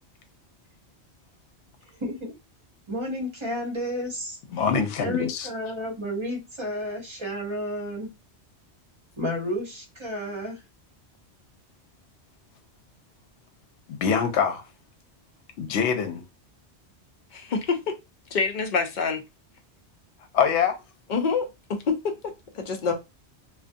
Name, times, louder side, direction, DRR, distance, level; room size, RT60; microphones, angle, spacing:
voice 1, 2.0-2.3 2.9-4.4 5.0-8.1 9.2-10.6, equal, 30° right, 0.8 m, -31 dB
voice 2, 4.5-5.5 13.9-14.6 15.6-16.2 20.3-20.8, left 7 dB, 80° left, 0.8 m, -24 dB
voice 3, 17.3-18.0 18.3-19.2 21.1-22.9, left 5 dB, 55° left, 0.5 m, -27 dB
2.4 x 2.2 x 2.5 m
omnidirectional pair, 1.2 m